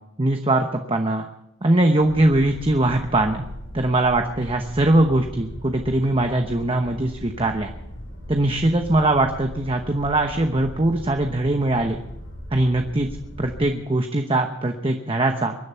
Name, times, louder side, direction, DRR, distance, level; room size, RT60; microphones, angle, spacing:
voice 1, 0.2-1.3 1.6-3.4 3.7-7.7 8.3-12.0 12.5-13.1 13.4-15.6, right 2 dB, 25° right, 5 dB, 1.0 m, -21 dB
Boat Water vehicle, 2.0-13.6, equal, 85° left, 6.7 m, -38 dB
23.5 x 10.5 x 5.7 m, 0.81 s
head